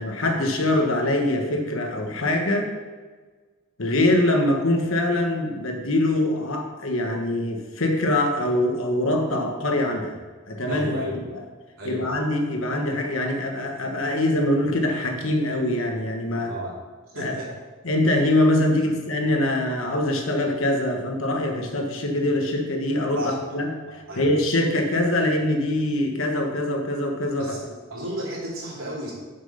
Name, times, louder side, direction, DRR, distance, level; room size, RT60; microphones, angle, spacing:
voice 1, 0.0-2.7 3.8-10.2 10.5-11.0 11.3-11.4 11.8-16.5 17.2-17.3 17.8-23.2 23.5-23.7 24.2-27.6, left 1 dB, 70° left, 3 dB, 1.2 m, -23 dB
voice 2, 10.7-11.2 11.8-12.1 16.4-16.8 17.1-17.5 23.1-23.4 24.1-24.3 27.4-29.1, equal, 75° right, -5 dB, 2.8 m, -33 dB
6.5 x 6.0 x 5.6 m, 1.4 s
head